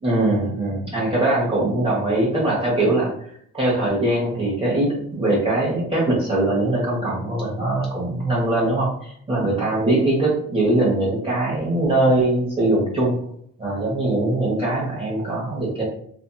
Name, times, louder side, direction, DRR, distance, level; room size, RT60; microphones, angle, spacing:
voice 1, 0.0-3.1 3.5-13.2 13.6-15.8, right 2 dB, 20° right, -6 dB, 1.0 m, -21 dB
2.8 x 2.5 x 2.2 m, 0.65 s
cardioid pair, 90°, 30 cm